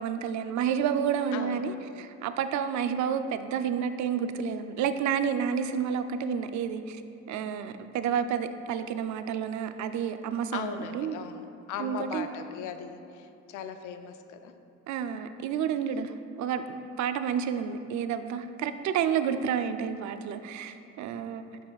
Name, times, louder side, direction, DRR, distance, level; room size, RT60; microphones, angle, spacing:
voice 1, 0.0-7.0 7.3-11.2 11.8-12.3 14.9-21.6, right 7 dB, 70° right, 10 dB, 0.4 m, -30 dB
voice 2, 1.3-1.6 10.5-14.5, left 7 dB, 80° left, 8 dB, 0.5 m, -38 dB
10.0 x 5.4 x 2.3 m, 2.6 s
cardioid pair, 90°, 30 cm